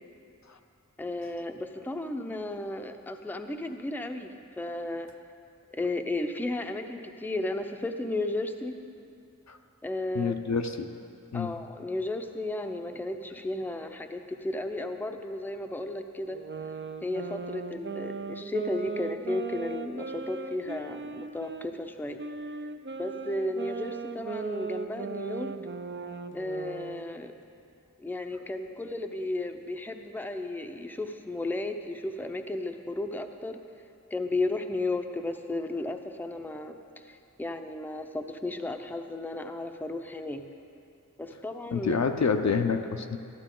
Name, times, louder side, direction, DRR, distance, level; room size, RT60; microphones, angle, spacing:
voice 1, 1.0-4.3 4.6-5.1 5.8-8.7 9.8-10.4 11.3-16.4 17.0-22.2 23.0-25.5 26.3-27.3 28.0-33.6 34.1-36.8 37.0-40.4 41.2-42.1, left 2 dB, 5° left, 5 dB, 0.6 m, -34 dB
voice 2, 10.1-10.9 11.3-11.5 41.7-43.2, left 5 dB, 60° left, 6 dB, 0.6 m, -27 dB
sound 1, 16.3-21.7 22.2-27.1, right 4 dB, 40° right, 0.5 m, -38 dB
12.0 x 11.5 x 3.8 m, 2.6 s
wide cardioid pair, 55°, 31 cm